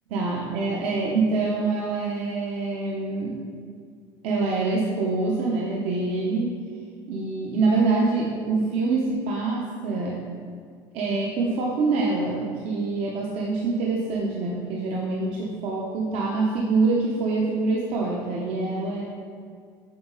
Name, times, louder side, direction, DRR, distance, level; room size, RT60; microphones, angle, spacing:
voice 1, 0.1-3.4 4.2-6.6 7.1-10.2 10.9-19.0, right 3 dB, 65° right, -3 dB, 0.8 m, -25 dB
7.6 x 4.0 x 3.9 m, 2.1 s
cardioid pair, 150°, 11 cm